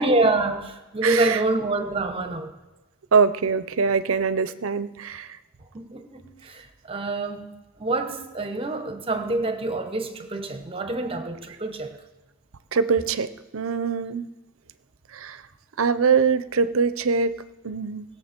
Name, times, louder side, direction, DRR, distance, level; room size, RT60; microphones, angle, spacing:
voice 1, 0.0-2.6 5.7-7.5 7.8-12.0, right 2 dB, 25° right, 1.2 m, -26 dB
voice 2, 1.0-1.4 3.1-5.3 12.7-14.3 15.1-15.4 15.8-17.3 17.6-18.0, right 5 dB, 80° right, 0.6 m, -23 dB
19.5 x 7.1 x 4.5 m
head